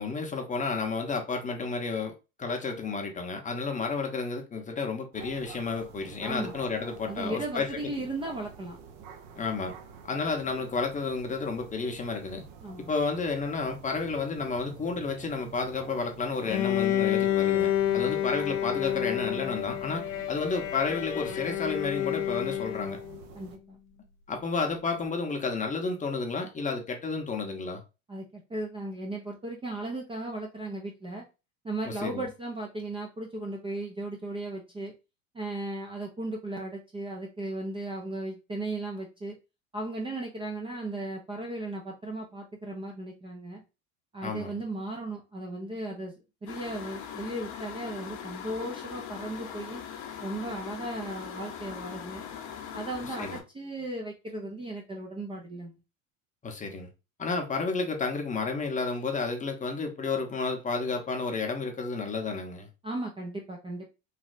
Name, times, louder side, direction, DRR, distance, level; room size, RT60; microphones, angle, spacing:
voice 1, 0.0-7.8 9.4-9.7 10.0-12.4 12.9-23.0 24.3-27.8 31.9-32.3 44.2-44.5 53.2-53.4 56.4-56.9 57.2-62.7, left 4 dB, 20° left, 0.8 m, -31 dB
sound 1, 5.1-23.6, right 7 dB, 55° right, 0.7 m, -48 dB
voice 2, 6.2-6.5 7.0-8.8 12.6-12.9 17.9-18.1 23.3-23.8 28.1-31.3 31.6-34.9 35.3-39.4 39.7-43.6 44.1-49.8 50.2-52.2 52.7-55.7 62.8-63.9, right 2 dB, 15° right, 0.5 m, -36 dB
Bowed string instrument, 16.4-23.2, left 12 dB, 75° left, 0.7 m, -29 dB
sound 2, 46.5-53.4, left 8 dB, 50° left, 0.9 m, -40 dB
3.2 x 2.7 x 2.5 m
hypercardioid pair, 100°, 39 cm